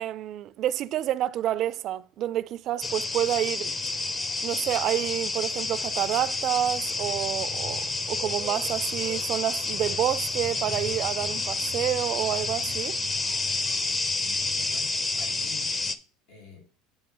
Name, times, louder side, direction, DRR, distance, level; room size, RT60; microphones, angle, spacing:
voice 1, 0.0-3.7 4.4-13.0, right 12 dB, 50° right, 0.3 m, -29 dB
sound 1, 2.8-15.9, left 3 dB, 25° left, 0.6 m, -29 dB
voice 2, 14.1-15.7 16.3-16.6, left 6 dB, 90° left, 3.2 m, -48 dB
7.9 x 2.8 x 5.4 m
supercardioid pair, 115°, 0 cm